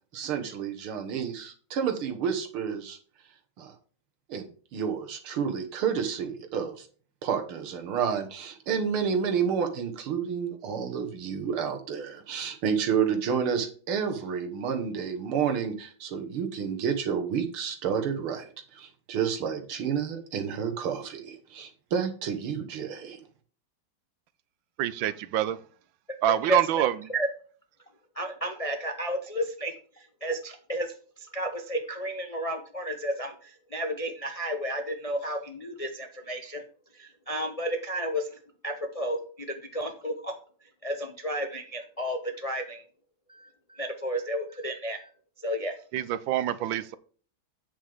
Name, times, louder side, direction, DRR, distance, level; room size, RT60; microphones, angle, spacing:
voice 1, 0.1-3.0 3.6-3.7 4.3-4.5 4.7-6.9 7.2-23.2, right 7 dB, 90° right, 2.2 m, -30 dB
voice 2, 24.8-25.6 26.2-26.9 45.9-47.0, right 12 dB, 75° right, 1.3 m, -26 dB
voice 3, 26.4-27.3 28.1-36.6 36.9-38.4 38.6-40.3 40.8-42.8 43.3-45.1 45.4-45.8, equal, 40° left, 0.5 m, -32 dB
8.7 x 7.2 x 3.5 m
omnidirectional pair, 2.3 m